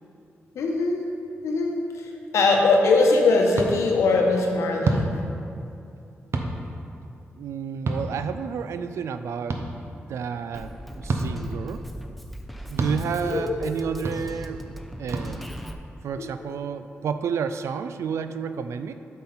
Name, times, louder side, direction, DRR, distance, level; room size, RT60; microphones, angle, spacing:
voice 1, 0.5-1.0 1.4-5.0 13.2-13.7 16.4-16.5, left 3 dB, 90° left, 1 dB, 0.9 m, -21 dB
sound 1, 3.5-3.7 4.8-5.1 6.3-6.5 7.9-8.0 9.5-9.6 11.1-11.3 12.8-12.9 14.0-14.2 15.1-15.3, right 3 dB, 65° right, 0.8 m, -25 dB
voice 2, 7.3-9.6 10.1-11.8 12.7-15.5 16.0-18.9, right 6 dB, 80° right, 10 dB, 0.3 m, -31 dB
Drum kit, 10.5-15.7, equal, ahead, 0.6 m, -40 dB
8.4 x 5.7 x 4.0 m, 2.7 s
cardioid pair, 60°, 5 cm